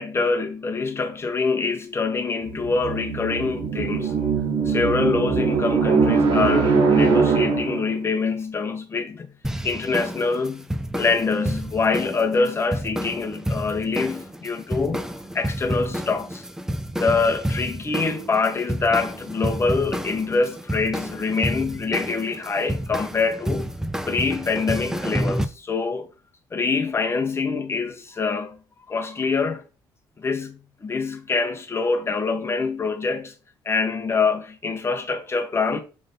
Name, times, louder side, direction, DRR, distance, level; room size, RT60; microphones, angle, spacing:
voice 1, 0.0-4.2 4.6-9.3 9.6-10.7 11.0-16.4 17.0-23.7 24.1-26.1 26.5-28.6 28.9-29.6 30.2-33.3 33.6-35.8, left 4 dB, 30° left, 1.2 m, -25 dB
sound 1, 2.5-8.0, right 5 dB, 80° right, 1.9 m, -21 dB
sound 2, 9.4-25.5, equal, 5° right, 0.7 m, -30 dB
6.7 x 3.8 x 3.8 m
cardioid pair, 90°, 8 cm